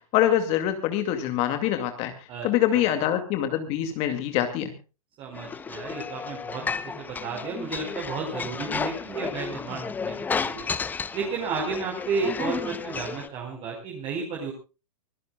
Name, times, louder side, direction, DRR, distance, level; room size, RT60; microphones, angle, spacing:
voice 1, 0.0-4.7, left 11 dB, 35° left, 8 dB, 2.3 m, -25 dB
voice 2, 5.2-10.7 11.1-14.5, right 4 dB, 30° right, 0 dB, 4.7 m, -32 dB
sound 1, 5.3-13.3, left 5 dB, 10° left, 0.7 m, -33 dB
25.0 x 16.0 x 2.3 m, 0.31 s
hypercardioid pair, 140°, 18 cm